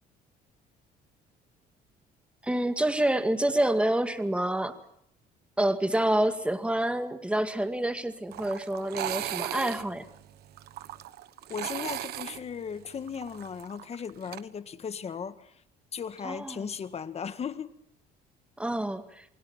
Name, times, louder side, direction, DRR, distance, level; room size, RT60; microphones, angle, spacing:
voice 1, 2.4-4.7 5.6-10.0 16.2-16.7 18.6-19.2, right 1 dB, 5° right, 2.2 m, -27 dB
sound 1, 8.3-14.4, right 13 dB, 70° right, 1.2 m, -37 dB
voice 2, 11.5-15.5 15.9-17.7, left 7 dB, 40° left, 1.7 m, -37 dB
29.0 x 21.5 x 7.3 m
cardioid pair, 110°, 17 cm